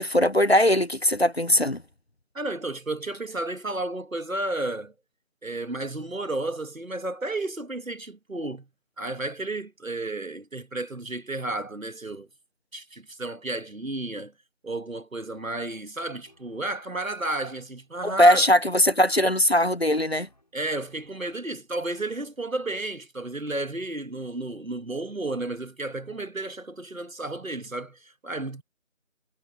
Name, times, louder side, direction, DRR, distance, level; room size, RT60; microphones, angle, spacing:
voice 1, 0.0-1.8 18.0-20.3, equal, 55° left, 0.5 m, -20 dB
voice 2, 2.4-4.9 5.4-8.7 9.0-12.3 12.7-14.3 14.6-18.5 20.5-28.6, right 2 dB, 80° right, 1.9 m, -32 dB
sound 1, 15.3-22.7, left 1 dB, 35° left, 5.5 m, -62 dB
figure-of-eight pair, 175°, 40 cm